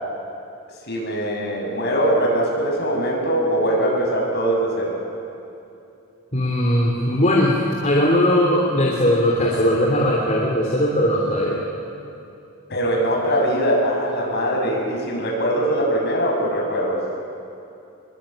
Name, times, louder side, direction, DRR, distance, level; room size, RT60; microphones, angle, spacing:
voice 1, 0.9-5.0 12.7-17.0, right 1 dB, 50° left, -1 dB, 7.3 m, -22 dB
voice 2, 6.3-7.5 7.8-11.6, equal, 35° left, -3 dB, 3.3 m, -19 dB
26.0 x 23.0 x 9.0 m, 2.6 s
head